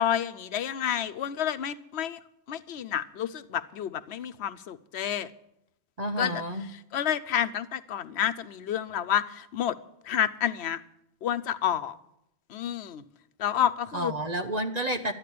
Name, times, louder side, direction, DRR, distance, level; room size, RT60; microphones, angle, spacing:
voice 1, 0.0-2.2 2.5-5.3 6.2-6.4 6.9-9.8 10.0-10.8 11.2-12.0 12.5-13.0 13.4-14.1, left 9 dB, 80° left, 12 dB, 1.0 m, -29 dB
voice 2, 6.0-6.7 13.9-15.1, right 1 dB, 40° right, 6 dB, 0.9 m, -30 dB
13.0 x 10.5 x 8.4 m, 0.79 s
omnidirectional pair, 1.1 m